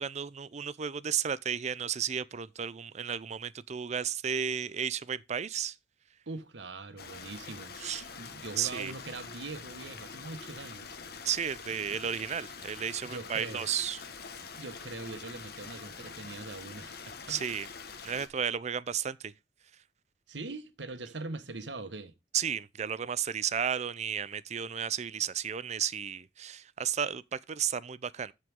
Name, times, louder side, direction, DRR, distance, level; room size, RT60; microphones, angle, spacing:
voice 1, 0.0-5.8 7.8-8.0 8.6-8.9 11.2-14.0 17.3-17.7 18.0-19.3 22.3-28.3, right 8 dB, 40° right, 0.5 m, -33 dB
voice 2, 6.3-7.8 8.2-10.9 11.9-12.0 13.0-13.6 14.5-17.4 20.3-22.1, right 3 dB, 90° right, 1.4 m, -42 dB
Stream, 7.0-18.3, left 5 dB, 60° left, 1.4 m, -45 dB
14.0 x 4.9 x 3.6 m
head